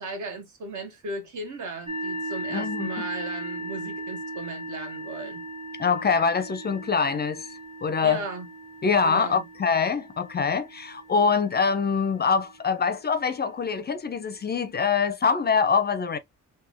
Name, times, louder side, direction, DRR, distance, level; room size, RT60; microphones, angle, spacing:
voice 1, 0.0-5.4 8.0-8.5 9.0-9.4, right 3 dB, 65° right, 1.4 m, -36 dB
sound 1, 1.9-13.4, right 1 dB, 20° right, 0.7 m, -38 dB
voice 2, 2.5-3.1 5.8-7.5 7.8-8.2 8.8-16.2, left 5 dB, 30° left, 0.4 m, -24 dB
3.4 x 2.7 x 3.5 m
cardioid pair, 125°, 32 cm